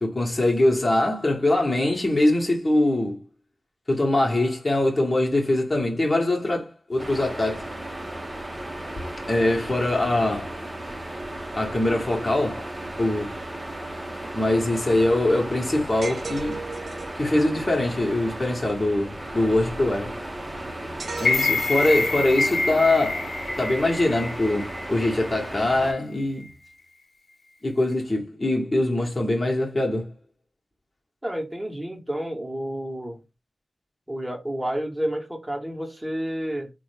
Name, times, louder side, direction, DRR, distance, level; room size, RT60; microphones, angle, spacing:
voice 1, 0.0-3.2 3.9-7.7 9.3-10.6 11.6-12.7 13.0-13.4 14.3-16.6 17.2-20.2 21.2-23.3 23.6-26.5 27.6-30.1, left 1 dB, 35° left, 1.1 m, -23 dB
sound 1, 7.0-25.9, right 1 dB, 25° right, 0.8 m, -35 dB
sound 2, 16.0-17.2 21.0-22.6, right 4 dB, 70° right, 0.4 m, -36 dB
sound 3, 21.2-25.3 25.7-25.8, left 3 dB, 65° left, 0.7 m, -26 dB
voice 2, 31.2-33.2 34.1-36.7, right 1 dB, 10° right, 1.2 m, -30 dB
3.4 x 2.2 x 3.2 m
cardioid pair, 40°, 0 cm